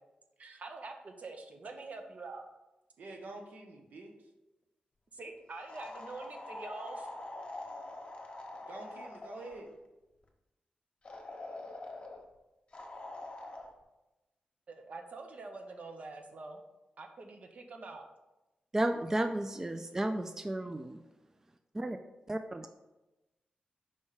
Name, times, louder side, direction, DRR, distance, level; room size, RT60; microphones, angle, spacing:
voice 1, 0.4-2.5 5.1-7.1 14.7-16.6 17.0-18.1, right 3 dB, 55° right, 5 dB, 0.8 m, -45 dB
voice 2, 3.0-4.2 8.7-9.7, right 2 dB, 80° right, 2 dB, 0.9 m, -47 dB
sound 1, 5.7-9.7 11.0-12.2 12.7-13.7, left 2 dB, 35° left, 1.1 m, -44 dB
voice 3, 18.7-21.0 21.7-22.0 22.3-22.7, right 1 dB, 15° right, 7 dB, 0.3 m, -33 dB
5.3 x 3.3 x 5.5 m, 1.0 s
wide cardioid pair, 105°, 3 cm